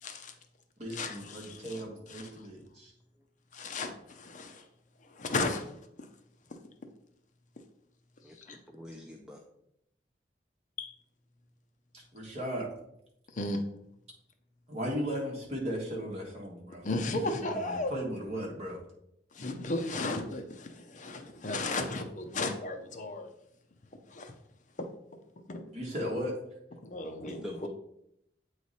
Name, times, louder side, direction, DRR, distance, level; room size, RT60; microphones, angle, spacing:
voice 1, 0.0-0.3 0.9-1.8 2.1-2.5 3.5-4.7 5.0-5.8 6.5-6.6 8.4-8.6 10.8-10.9 13.3-13.6 16.8-17.9 19.3-23.3 24.1-24.3 24.8-24.9 25.5-25.6 26.8-27.7, left 2 dB, 45° left, 6 dB, 0.6 m, -35 dB
voice 2, 0.8-2.9 11.9-12.7 14.7-18.8 25.7-26.4, equal, 40° right, -2 dB, 1.7 m, -37 dB
voice 3, 8.2-9.4 27.2-27.7, equal, 5° right, 0 dB, 0.5 m, -44 dB
8.3 x 3.2 x 4.1 m, 0.77 s
head